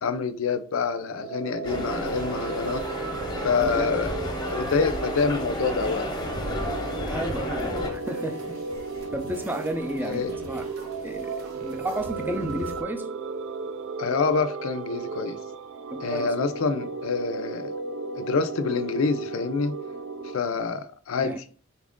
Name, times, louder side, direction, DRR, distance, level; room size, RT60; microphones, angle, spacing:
voice 1, 0.0-2.9 3.4-4.1 4.4-6.1 10.0-10.4 14.0-15.4 16.0-17.7 18.2-19.8 20.3-21.4, left 5 dB, 80° left, 0.4 m, -27 dB
sound 1, 1.1-20.4, right 4 dB, 70° right, 0.4 m, -35 dB
sound 2, 1.6-7.9, left 1 dB, 20° left, 0.8 m, -32 dB
voice 2, 3.6-3.9 7.1-8.6 9.1-10.7 11.0-13.2 15.9-16.3 21.2-21.4, right 1 dB, 10° right, 0.4 m, -33 dB
sound 3, 7.8-12.8, right 1 dB, 90° right, 0.9 m, -43 dB
4.2 x 2.5 x 3.5 m
head